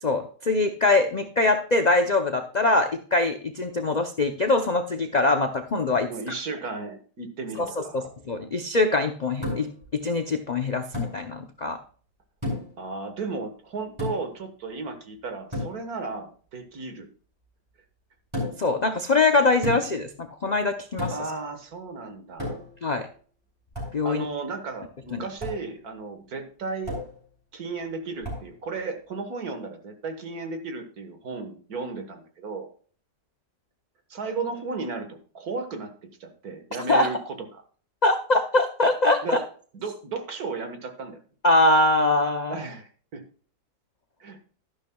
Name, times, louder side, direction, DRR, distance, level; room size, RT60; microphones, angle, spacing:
voice 1, 0.0-6.1 7.6-11.8 18.6-21.1 22.8-23.1 23.9-24.3 25.1-25.3 36.9-37.1 38.0-39.4 41.4-42.6, left 2 dB, 70° left, 6 dB, 0.4 m, -23 dB
voice 2, 6.1-8.1 12.8-17.1 21.1-22.6 24.0-27.0 27.5-32.7 34.1-35.9 36.2-37.2 37.5-37.6 39.2-39.4 39.7-41.2 42.5-43.2 44.2-44.4, right 4 dB, 60° right, 6 dB, 1.9 m, -34 dB
sound 1, 9.4-9.8 10.9-11.2 12.4-12.8 14.0-14.4 15.5-15.8 18.3-18.7 19.6-20.0 21.0-21.3 22.4-22.8 23.7-24.0 25.4-25.6 26.9-27.2 28.2-28.5, left 1 dB, 15° right, 5.9 m, -32 dB
12.5 x 11.5 x 2.3 m, 0.43 s
omnidirectional pair, 1.8 m